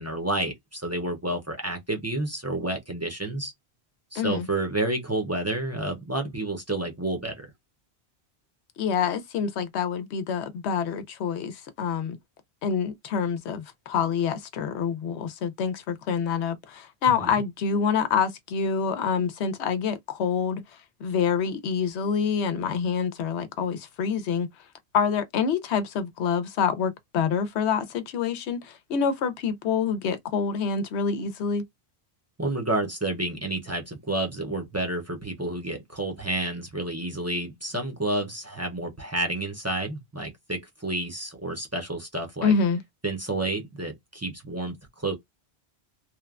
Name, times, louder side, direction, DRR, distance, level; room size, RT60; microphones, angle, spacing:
voice 1, 0.0-3.5 4.1-7.5 17.1-17.4 32.4-42.5 43.0-45.1, right 2 dB, 20° right, 0.4 m, -30 dB
voice 2, 4.2-4.5 8.8-12.2 12.6-20.6 21.0-24.5 24.9-31.6 42.4-42.8, left 6 dB, 90° left, 0.9 m, -26 dB
3.0 x 2.1 x 2.3 m
omnidirectional pair, 1.1 m